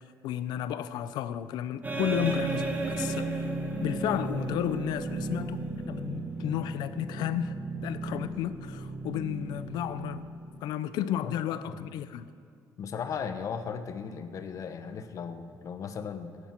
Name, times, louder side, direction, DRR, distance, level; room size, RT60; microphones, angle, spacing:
voice 1, 0.2-3.5 3.8-10.3 10.6-12.3, left 10 dB, 85° left, 0.6 m, -33 dB
sound 1, 1.8-10.7, right 2 dB, 25° right, 2.0 m, -34 dB
voice 2, 11.2-11.9 12.8-16.4, left 6 dB, 50° left, 0.9 m, -37 dB
16.0 x 11.5 x 4.5 m
cardioid pair, 120°, 7 cm